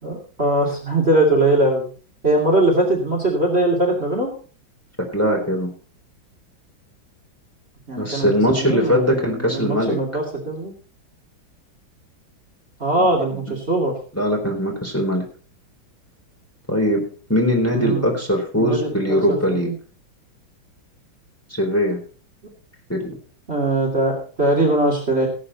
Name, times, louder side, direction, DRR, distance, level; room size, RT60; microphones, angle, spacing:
voice 1, 0.0-1.9 2.2-4.3 7.9-10.7 12.8-13.9 17.7-18.2 18.6-19.7 23.5-25.3, right 2 dB, 30° right, 0 dB, 3.0 m, -21 dB
voice 2, 5.0-5.7 8.0-10.0 13.0-13.6 14.1-15.2 16.7-17.0 17.3-19.7 21.5-22.0 22.9-23.1, equal, 5° left, 0 dB, 3.8 m, -21 dB
17.5 x 8.6 x 4.2 m, 0.40 s
omnidirectional pair, 2.2 m